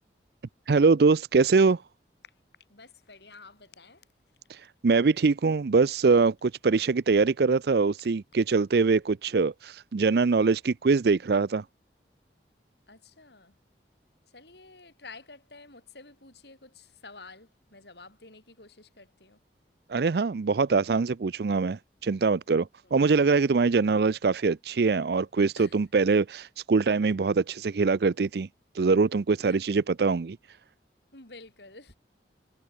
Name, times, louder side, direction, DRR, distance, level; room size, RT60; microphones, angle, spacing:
voice 1, 0.7-1.8 4.5-11.6 19.9-28.5 28.7-30.4, right 4 dB, 60° right, 0.5 m, -23 dB
voice 2, 2.7-4.1 12.9-13.6 14.3-19.4 22.8-23.0 25.6-25.8 29.4-29.6 31.1-31.9, left 3 dB, 70° left, 7.4 m, -50 dB
head